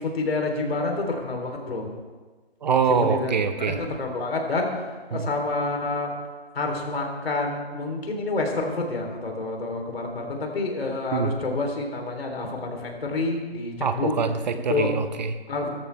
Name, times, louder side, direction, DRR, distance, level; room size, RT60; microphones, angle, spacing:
voice 1, 0.0-1.9 2.9-3.3 3.7-4.7 5.1-6.1 6.5-14.1 14.7-14.9 15.5-15.7, left 3 dB, 65° left, 2 dB, 3.6 m, -28 dB
voice 2, 2.6-3.8 5.1-5.3 11.1-11.3 13.8-15.3, right 6 dB, 45° right, 9 dB, 0.9 m, -24 dB
18.0 x 14.0 x 3.5 m, 1.3 s
hypercardioid pair, 155°, 32 cm